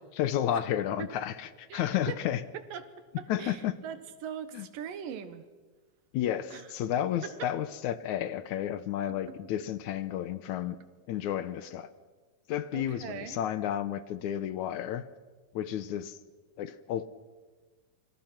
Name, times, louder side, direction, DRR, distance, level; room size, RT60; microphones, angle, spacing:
voice 1, 0.1-2.4 3.3-3.8 4.5-4.7 6.1-10.8 11.1-11.9 12.5-15.1 15.5-16.2 16.6-17.1, left 11 dB, 70° left, 14 dB, 2.2 m, -32 dB
voice 2, 1.7-2.2 2.5-5.5 6.5-6.7 7.2-7.5 9.1-9.4 12.7-13.4, right 8 dB, 85° right, 11 dB, 3.1 m, -41 dB
28.5 x 25.5 x 6.0 m, 1.3 s
omnidirectional pair, 3.8 m